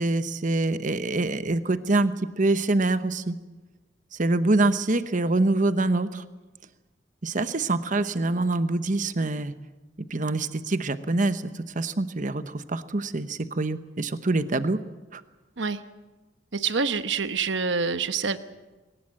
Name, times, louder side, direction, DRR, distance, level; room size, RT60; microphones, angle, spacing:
voice 1, 0.0-3.3 4.1-6.2 7.2-9.5 10.1-14.8 15.1-15.2, right 2 dB, 45° right, 12 dB, 1.0 m, -25 dB
voice 2, 16.5-18.4, right 5 dB, 80° right, 11 dB, 1.1 m, -26 dB
21.0 x 19.5 x 7.7 m, 1.2 s
head